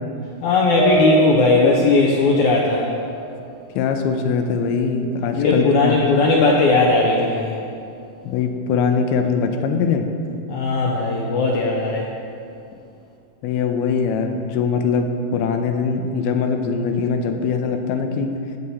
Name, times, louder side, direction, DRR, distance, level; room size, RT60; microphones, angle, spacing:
voice 1, 0.4-2.9 5.3-7.6 10.5-12.1, left 3 dB, 75° left, -2 dB, 1.8 m, -17 dB
sound 1, 0.8-4.2 4.6-5.6, right 6 dB, 85° right, 3.8 m, -27 dB
voice 2, 3.8-6.2 8.2-10.1 13.4-18.3, left 5 dB, 90° left, 5 dB, 2.7 m, -22 dB
16.0 x 7.7 x 4.2 m, 2.5 s
omnidirectional pair, 4.4 m